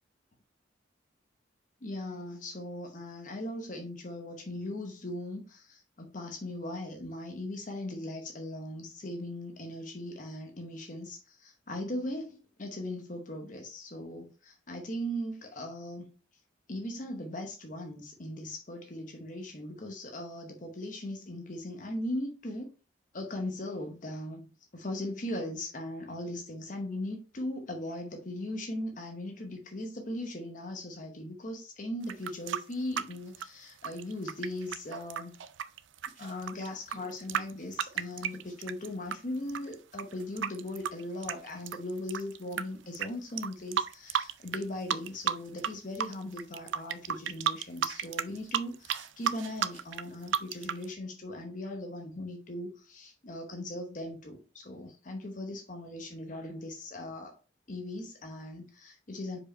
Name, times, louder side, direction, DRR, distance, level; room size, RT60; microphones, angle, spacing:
voice 1, 1.8-16.1 16.7-22.7 23.1-35.3 36.1-57.4 57.7-59.4, left 1 dB, 40° left, 0.9 m, -39 dB
sound 1, 32.0-39.2 39.5-42.6 42.9-43.1 43.4-44.6 44.9-45.7 46.0-50.8, right 8 dB, 75° right, 0.5 m, -33 dB
5.1 x 4.8 x 4.2 m
head